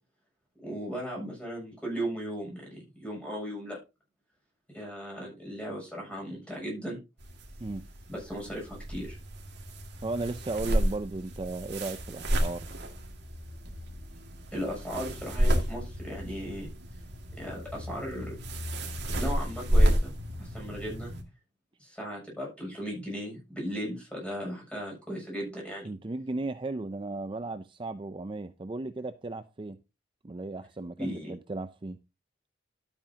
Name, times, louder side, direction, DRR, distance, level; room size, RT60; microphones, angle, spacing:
voice 1, 0.6-3.8 4.7-7.0 8.1-9.2 14.5-16.7 17.4-18.8 19.2-20.1 20.4-21.1 21.8-25.9 31.0-31.4, equal, 5° left, 7.1 m, -37 dB
sound 1, 7.2-21.2, equal, 65° right, 2.2 m, -31 dB
voice 2, 10.0-12.7 25.5-25.6 25.8-29.8 30.2-32.0, right 2 dB, 25° right, 0.5 m, -35 dB
12.5 x 8.8 x 2.9 m
head